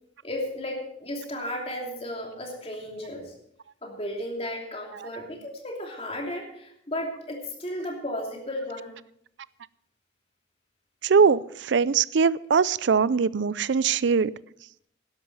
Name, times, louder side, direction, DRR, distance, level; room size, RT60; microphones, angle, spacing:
voice 1, 0.2-3.3 3.8-8.9, left 1 dB, 30° left, 1 dB, 2.9 m, -34 dB
voice 2, 11.0-14.3, right 5 dB, 70° right, 20 dB, 0.4 m, -21 dB
12.5 x 11.0 x 5.5 m, 0.71 s
head